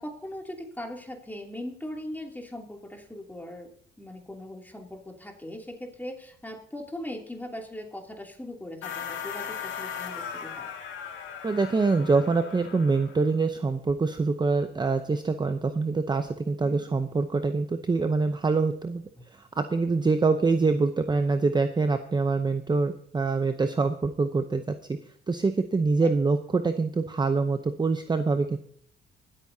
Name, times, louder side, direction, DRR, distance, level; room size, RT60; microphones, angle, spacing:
voice 1, 0.0-3.7 4.0-10.7 16.6-17.0 26.0-26.1, left 1 dB, 10° left, 2 dB, 2.8 m, -40 dB
sound 1, 8.8-13.3, left 7 dB, 80° left, 2.1 m, -38 dB
voice 2, 11.4-19.0 19.6-24.7 25.3-28.6, right 4 dB, 20° right, 8 dB, 0.7 m, -25 dB
24.5 x 8.6 x 2.8 m, 0.64 s
cardioid pair, 90°, 20 cm